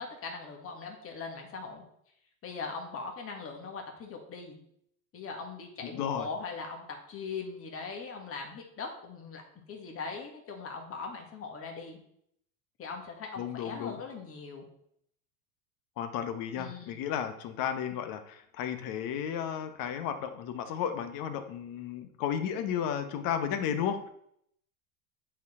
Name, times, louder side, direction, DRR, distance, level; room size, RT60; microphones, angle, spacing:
voice 1, 0.0-1.8 2.4-4.6 5.1-9.4 9.7-12.0 12.8-14.7 16.6-16.9, left 4 dB, 30° left, 2 dB, 1.7 m, -40 dB
voice 2, 5.9-6.3 13.4-14.0 16.0-24.1, left 8 dB, 50° left, 9 dB, 1.1 m, -33 dB
8.1 x 4.5 x 4.3 m, 0.71 s
supercardioid pair, 110°, 44 cm